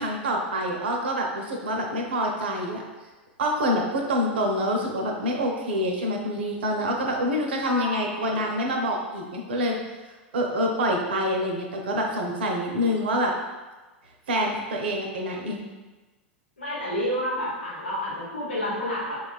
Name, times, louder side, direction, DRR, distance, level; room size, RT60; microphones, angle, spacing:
voice 1, 0.0-2.8 3.4-9.8 10.3-13.3 14.3-15.6, equal, 65° right, 1 dB, 0.5 m, -26 dB
voice 2, 7.6-8.5 16.6-19.2, left 1 dB, 80° left, -6 dB, 1.1 m, -30 dB
4.4 x 2.3 x 2.3 m, 1.2 s
figure-of-eight pair, 90°, 6 cm